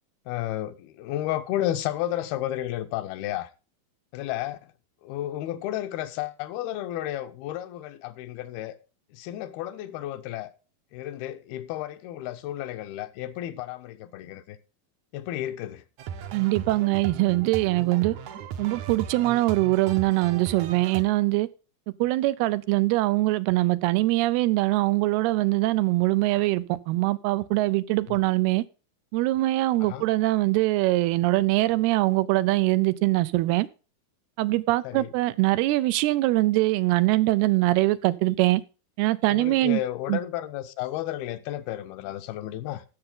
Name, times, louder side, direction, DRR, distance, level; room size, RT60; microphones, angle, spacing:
voice 1, 0.3-3.5 4.1-4.6 5.0-8.7 9.1-10.5 10.9-14.6 15.1-15.8 28.1-28.3 29.8-30.0 34.8-35.1 39.3-42.8, left 13 dB, 80° left, 2.6 m, -32 dB
sound 1, 16.0-21.0, right 8 dB, 70° right, 1.8 m, -37 dB
voice 2, 16.3-18.1 18.6-21.5 22.0-28.6 29.1-33.7 34.4-38.6 39.0-39.8 40.1-40.2, right 19 dB, 85° right, 2.6 m, -23 dB
15.5 x 6.8 x 3.8 m
omnidirectional pair, 4.5 m